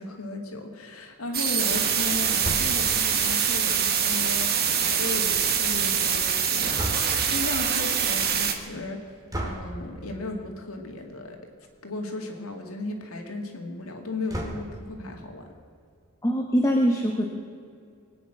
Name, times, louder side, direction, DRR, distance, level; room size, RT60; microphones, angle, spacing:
voice 1, 0.0-9.0 9.4-11.4 11.8-15.4, left 2 dB, 80° left, 2 dB, 2.3 m, -35 dB
sound 1, 1.3-8.5, right 7 dB, 45° right, 1.4 m, -24 dB
sound 2, 2.4-3.0 6.8-7.4 9.3-9.8 11.0-11.2 11.6-11.7 12.0-12.1 14.3-14.9, right 1 dB, 15° right, 2.0 m, -33 dB
voice 2, 16.2-17.2, equal, 15° left, 1 dB, 1.2 m, -22 dB
23.5 x 9.5 x 6.1 m, 2.3 s
head